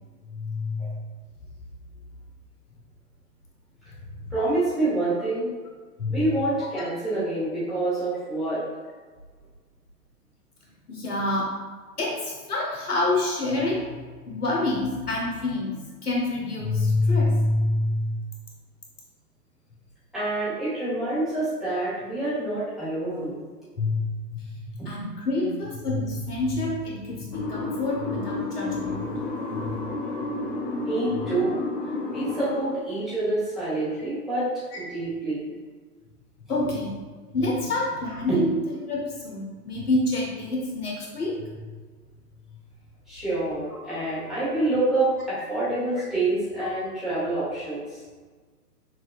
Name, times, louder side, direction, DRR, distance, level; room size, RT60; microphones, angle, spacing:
voice 1, 0.3-1.0 4.2-4.3 6.0-6.2 10.9-11.5 12.0-18.2 23.8-29.1 29.5-29.7 34.7-34.8 36.5-36.9 37.3-38.5 38.9-41.4, left 2 dB, 65° left, -3 dB, 1.4 m, -27 dB
voice 2, 4.3-5.5 6.1-8.6 20.1-23.4 24.8-25.1 25.4-25.5 30.9-31.6 32.1-34.5 34.7-35.5 38.3-38.4 43.1-48.0, right 2 dB, ahead, -13 dB, 1.4 m, -27 dB
sound 1, 27.3-32.6, left 3 dB, 35° left, 0.6 m, -31 dB
6.0 x 2.9 x 2.4 m, 1.4 s
figure-of-eight pair, 120°, 48 cm